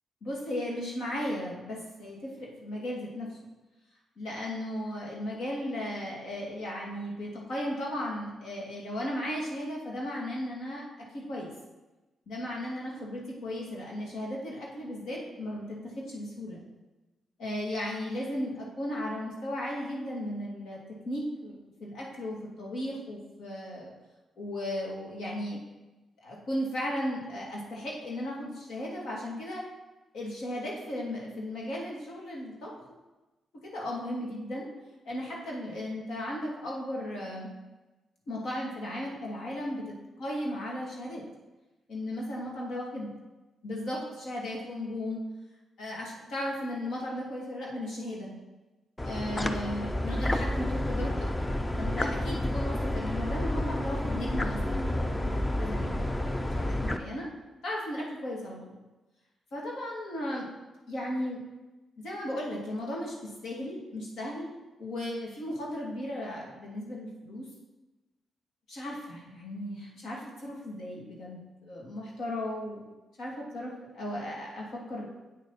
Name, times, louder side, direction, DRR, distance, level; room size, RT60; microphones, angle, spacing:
voice 1, 0.2-3.3 4.2-10.8 11.1-11.5 12.3-16.6 17.4-20.8 21.0-23.9 24.4-25.6 26.2-29.6 30.1-32.7 33.7-34.7 35.1-37.5 38.3-41.2 41.9-43.1 43.6-45.2 45.8-48.3 49.0-51.5 51.8-57.3 57.6-58.8 59.5-60.5 60.9-61.4 62.0-64.5 64.8-67.5 68.7-72.8 73.2-75.1, left 1 dB, 75° left, -3 dB, 2.6 m, -36 dB
sound 1, 49.0-57.0, left 1 dB, 20° left, 0.7 m, -30 dB
8.3 x 6.6 x 4.2 m, 1.1 s
supercardioid pair, 55°, 0 cm